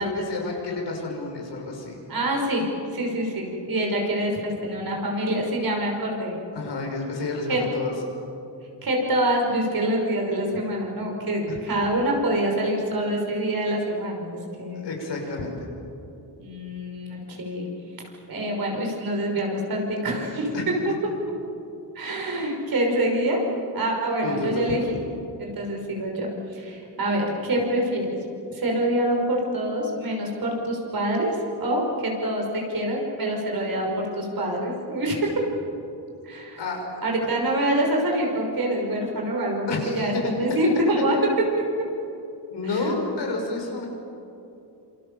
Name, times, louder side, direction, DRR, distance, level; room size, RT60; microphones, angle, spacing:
voice 1, 0.0-2.0 6.5-7.9 11.5-11.6 14.8-15.7 20.5-20.6 24.2-24.7 36.6-36.9 39.7-40.3 40.9-41.0 42.5-43.9, left 3 dB, 80° left, 1 dB, 6.3 m, -30 dB
voice 2, 2.1-2.7 2.9-6.4 7.5-7.6 8.8-14.9 16.4-17.7 18.3-20.7 22.0-23.4 23.7-25.0 25.4-28.2 28.5-35.5 36.2-36.6 37.0-39.7 40.0-41.2 42.7-42.9, right 1 dB, 55° right, 0 dB, 5.9 m, -26 dB
27.5 x 27.5 x 7.1 m, 2.8 s
wide cardioid pair, 135°, 41 cm